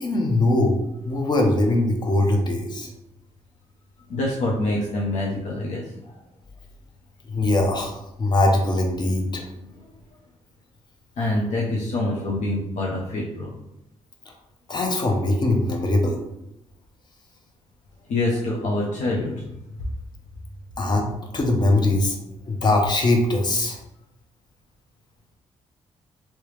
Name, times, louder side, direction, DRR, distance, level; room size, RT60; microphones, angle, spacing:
voice 1, 0.0-2.9 7.3-9.4 14.7-16.2 20.8-22.1 22.5-23.8, left 2 dB, 35° left, 2 dB, 0.7 m, -21 dB
voice 2, 4.1-5.8 11.2-13.5 18.1-19.4, left 2 dB, 80° left, -4 dB, 0.7 m, -25 dB
3.2 x 2.9 x 3.2 m, 0.87 s
cardioid pair, 105°, 12 cm